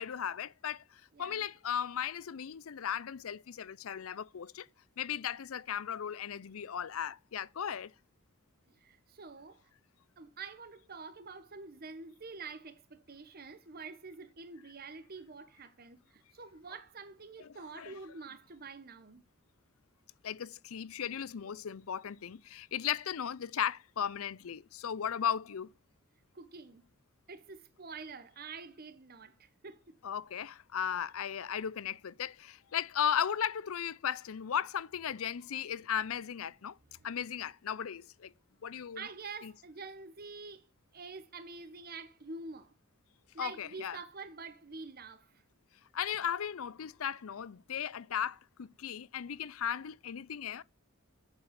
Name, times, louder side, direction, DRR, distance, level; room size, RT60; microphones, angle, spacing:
voice 1, 0.0-4.7 5.0-7.9 17.4-17.9 20.2-25.7 30.0-36.8 37.0-38.3 38.6-39.1 39.4-39.5 43.4-44.0 45.9-50.6, left 8 dB, 80° left, 0.5 m, -36 dB
voice 2, 1.1-1.5 8.7-9.6 10.2-19.2 26.3-26.8 27.3-30.0 37.0-37.1 38.9-40.7 40.9-42.7 43.3-45.3, right 4 dB, 45° right, 1.0 m, -47 dB
8.5 x 7.3 x 6.6 m
head